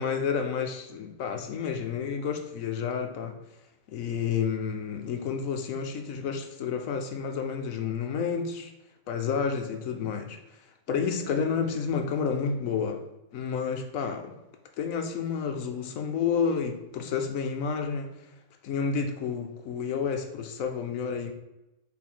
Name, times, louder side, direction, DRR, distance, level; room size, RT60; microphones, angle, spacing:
voice 1, 0.0-3.4 3.9-8.7 9.1-10.4 10.9-13.0 13.3-14.4 14.8-18.1 18.6-21.3, left 6 dB, 65° left, 6 dB, 0.9 m, -30 dB
4.7 x 4.1 x 5.5 m, 0.96 s
omnidirectional pair, 1.8 m